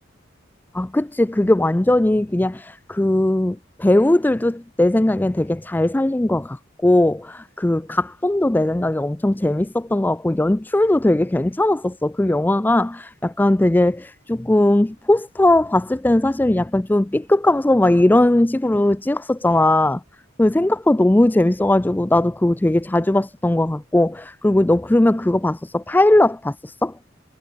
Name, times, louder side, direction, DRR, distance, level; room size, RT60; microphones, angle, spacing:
voice 1, 0.7-6.6 6.8-20.0 20.4-26.9, left 1 dB, 10° left, 0.4 m, -19 dB
head